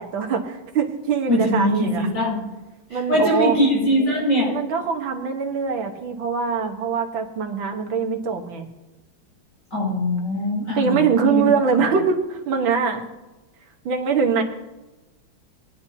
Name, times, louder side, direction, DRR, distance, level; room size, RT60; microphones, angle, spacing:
voice 1, 0.0-2.1 2.9-3.6 4.5-8.7 10.7-13.0 13.9-14.4, right 6 dB, 80° right, 3 dB, 2.0 m, -23 dB
voice 2, 1.3-2.5 2.9-4.5 9.7-11.4, left 1 dB, 40° left, -8 dB, 5.8 m, -22 dB
21.5 x 9.9 x 2.8 m, 1.1 s
omnidirectional pair, 2.1 m